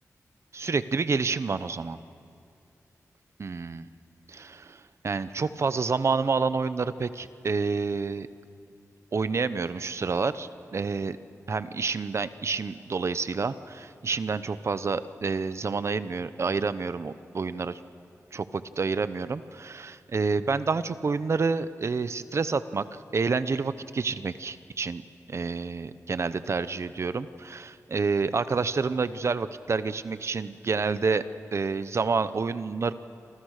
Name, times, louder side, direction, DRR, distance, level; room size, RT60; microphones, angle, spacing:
voice 1, 0.5-2.0 3.4-3.9 4.3-8.3 9.1-11.2 11.5-17.8 18.3-22.8 23.1-31.2 31.5-32.9, right 4 dB, 50° right, 14 dB, 0.9 m, -28 dB
28.5 x 25.5 x 6.6 m, 2.4 s
wide cardioid pair, 130°, 6 cm